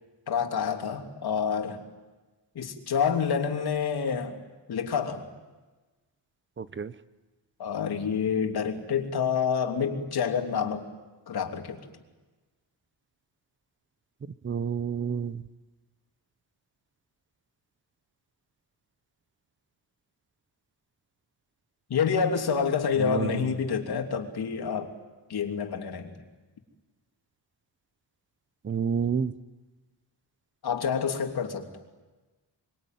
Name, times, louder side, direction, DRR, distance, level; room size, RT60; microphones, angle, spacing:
voice 1, 0.3-1.8 2.5-4.4 4.7-5.3 7.6-10.8 11.3-11.8 21.9-24.9 25.3-26.1 30.6-31.6, left 6 dB, 60° left, 3 dB, 3.2 m, -28 dB
voice 2, 6.6-6.9 14.4-15.4 23.0-23.5 28.6-29.3, right 6 dB, 25° right, 15 dB, 0.8 m, -29 dB
25.5 x 24.5 x 9.3 m, 1.2 s
cardioid pair, 135°, 43 cm